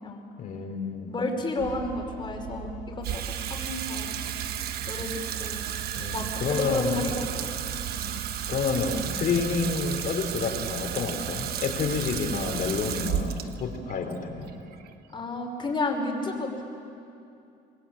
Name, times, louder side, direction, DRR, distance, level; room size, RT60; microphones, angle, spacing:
voice 1, 0.4-1.1 6.0-7.1 8.5-14.5, left 5 dB, 55° left, 4 dB, 3.9 m, -29 dB
voice 2, 1.1-4.2 4.9-5.1 5.4-5.7 6.1-7.5 8.0-8.2 15.1-16.6, left 2 dB, 25° left, 1 dB, 5.3 m, -32 dB
sound 1, 1.6-13.4, right 12 dB, 90° right, 0.9 m, -40 dB
Water tap faucet / Sink (filling or washing), 3.0-15.4, right 9 dB, 65° right, 1.3 m, -34 dB
25.5 x 20.5 x 8.9 m, 2.6 s
cardioid pair, 110°, 17 cm